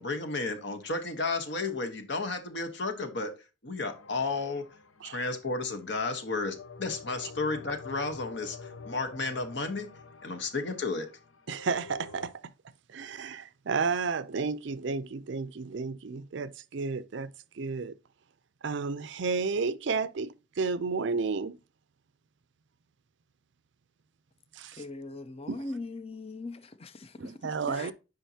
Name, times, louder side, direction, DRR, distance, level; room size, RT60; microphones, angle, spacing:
voice 1, 0.0-3.3 3.6-4.6 5.0-9.9 10.2-11.1, left 3 dB, 60° left, 1.1 m, -32 dB
sound 1, 3.9-5.6 6.4-12.3, left 4 dB, 75° left, 0.7 m, -48 dB
voice 2, 11.5-12.3 12.9-17.3 17.5-18.0 18.6-21.6 24.5-24.8 25.5-25.6 27.2-27.9, right 4 dB, 60° right, 0.5 m, -32 dB
voice 3, 24.7-27.9, left 2 dB, 30° left, 0.5 m, -40 dB
8.9 x 5.3 x 2.8 m
head